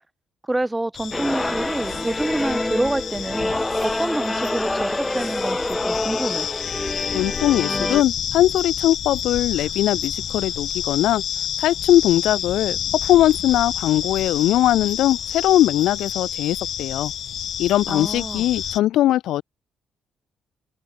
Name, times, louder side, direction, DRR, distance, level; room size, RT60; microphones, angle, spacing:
voice 1, 0.4-6.5 17.9-18.5, right 1 dB, 10° right, 2.7 m, -27 dB
sound 1, 0.9-18.8, left 9 dB, 65° left, 5.4 m, -30 dB
sound 2, 1.1-8.0, left 2 dB, 15° left, 1.2 m, -26 dB
voice 2, 7.1-11.2 11.6-12.8 13.1-17.1 17.6-19.4, left 13 dB, 85° left, 2.9 m, -20 dB
cardioid pair, 90°, 0 cm